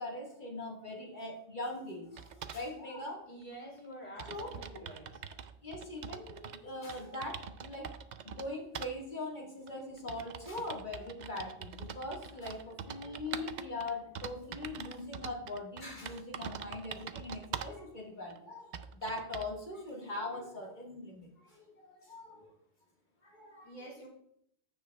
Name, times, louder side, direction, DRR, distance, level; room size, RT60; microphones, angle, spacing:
voice 1, 0.0-3.3 4.3-4.8 5.6-8.0 8.2-22.5 23.2-23.7, left 2 dB, 40° left, -2 dB, 1.8 m, -41 dB
sound 1, 2.2-2.6 3.5-3.6 3.8-3.9 4.2-6.6 6.9-8.5 8.7-8.9 9.7-17.8 18.3-18.4 18.7-19.6, right 7 dB, 60° right, 0.4 m, -44 dB
voice 2, 3.3-5.2 23.6-24.1, equal, 85° left, -3 dB, 3.1 m, -48 dB
15.5 x 5.4 x 2.3 m, 0.69 s
omnidirectional pair, 1.2 m